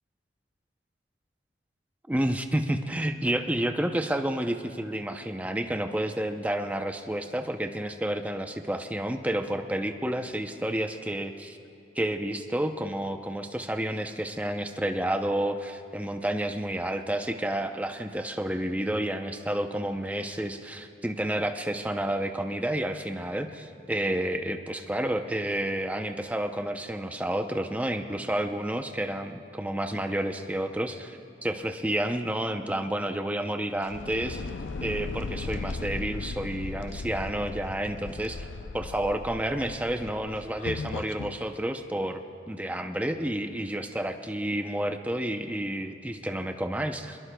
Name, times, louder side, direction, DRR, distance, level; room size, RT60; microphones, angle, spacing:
voice 1, 2.1-11.6 12.0-34.4 34.8-38.5 38.7-42.2 42.5-47.2, right 1 dB, 10° right, 6 dB, 0.6 m, -30 dB
sound 1, 33.8-41.4, left 3 dB, 85° left, 0.5 m, -37 dB
22.5 x 21.5 x 2.3 m, 2.7 s
head